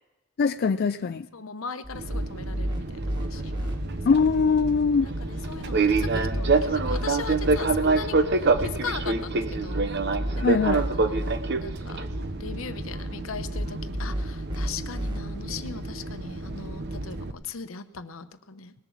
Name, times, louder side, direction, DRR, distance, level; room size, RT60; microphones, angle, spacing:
voice 1, 0.4-1.3 4.1-5.1 10.4-10.8, left 5 dB, 50° left, 9 dB, 0.4 m, -22 dB
voice 2, 1.3-3.7 5.0-9.9 10.4-12.1 12.4-18.7, left 5 dB, 80° left, 10 dB, 0.9 m, -39 dB
sound 1, 1.8-3.8 5.6-7.6 9.5-11.4 13.3-15.2, equal, 20° right, 1.4 m, -32 dB
Fixed-wing aircraft airplane, 1.9-17.3, right 3 dB, 55° right, 0.8 m, -28 dB
sound 2, 3.2-16.8, equal, 5° left, 3.8 m, -41 dB
19.5 x 7.2 x 7.1 m, 1.0 s
head